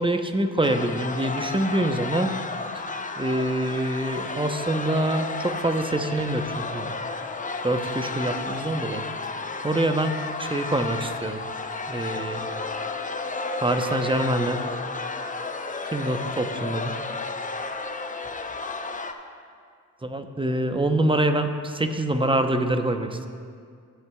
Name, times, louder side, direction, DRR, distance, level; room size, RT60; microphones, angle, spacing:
voice 1, 0.0-2.3 3.2-6.9 7.6-9.0 9.6-10.1 10.4-11.4 11.9-12.4 13.6-14.6 15.9-17.0 20.0-23.3, right 1 dB, 15° right, 7 dB, 0.8 m, -25 dB
sound 1, 0.6-19.1, left 3 dB, 20° left, 0.7 m, -32 dB
15.5 x 8.0 x 2.4 m, 2.2 s
supercardioid pair, 45°, 39 cm